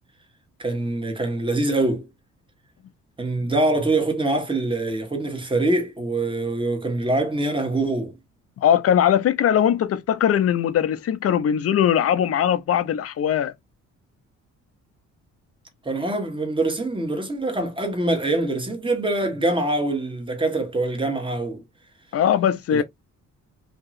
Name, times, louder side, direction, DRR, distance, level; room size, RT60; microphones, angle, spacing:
voice 1, 0.6-2.0 3.2-8.1 15.8-21.6 22.7-22.8, right 2 dB, 15° right, 1.3 m, -24 dB
voice 2, 8.6-13.5 22.1-22.8, left 9 dB, 50° left, 0.6 m, -20 dB
2.9 x 2.8 x 2.5 m
cardioid pair, 90°, 30 cm